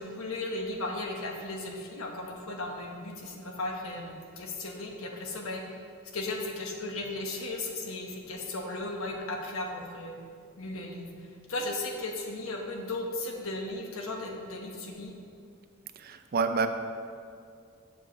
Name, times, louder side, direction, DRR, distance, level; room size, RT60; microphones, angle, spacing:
voice 1, 0.0-5.6 6.1-10.1 10.6-11.1 11.5-15.1, left 2 dB, 70° left, 1 dB, 1.1 m, -36 dB
voice 2, 16.0-16.7, right 5 dB, 45° right, 8 dB, 0.5 m, -28 dB
7.7 x 4.9 x 6.8 m, 2.3 s
head